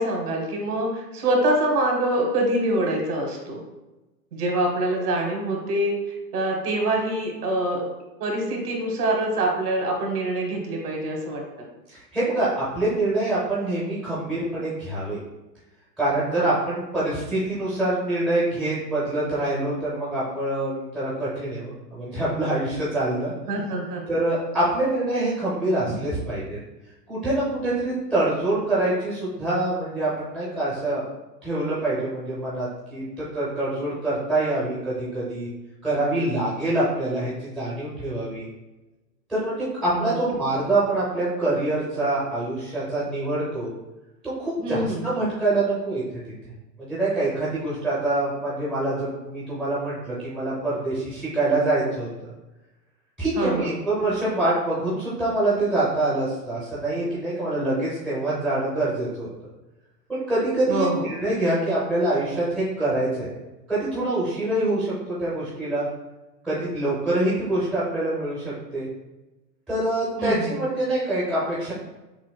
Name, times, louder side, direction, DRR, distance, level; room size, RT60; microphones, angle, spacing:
voice 1, 0.0-3.6 4.3-6.0 6.3-7.8 8.2-11.7 16.4-16.5 23.5-24.0 40.0-40.1 44.6-45.0 53.3-53.8 60.7-61.1 70.2-70.5, right 1 dB, 65° right, 1 dB, 1.2 m, -25 dB
voice 2, 11.9-15.2 16.0-23.3 24.1-26.6 27.1-31.0 31.4-35.5 35.8-38.5 39.3-43.7 44.2-46.0 46.8-52.3 53.2-59.3 60.1-63.3 63.7-65.9 66.4-68.9 69.7-71.7, right 2 dB, ahead, -10 dB, 0.4 m, -25 dB
6.0 x 2.0 x 2.2 m, 1.0 s
hypercardioid pair, 115°, 49 cm